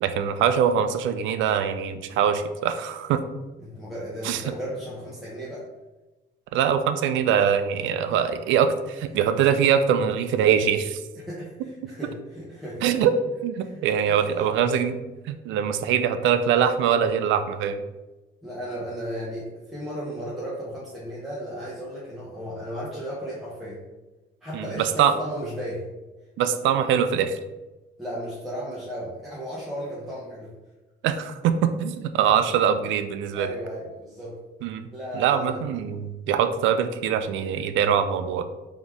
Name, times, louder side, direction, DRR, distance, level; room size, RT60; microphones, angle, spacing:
voice 1, 0.0-3.2 4.2-4.4 6.5-11.0 12.8-13.1 13.4-15.0 15.3-17.8 24.5-25.2 26.4-27.4 31.0-33.5 34.6-34.9 35.1-38.4, right 8 dB, 80° right, 9 dB, 0.4 m, -23 dB
voice 2, 3.6-5.7 8.1-8.2 11.2-13.0 13.6-14.5 18.4-23.8 24.4-25.9 28.0-30.5 33.3-34.4 34.9-35.6, equal, ahead, -9 dB, 1.1 m, -35 dB
4.1 x 3.0 x 3.5 m, 1.1 s
cardioid pair, 110°, 19 cm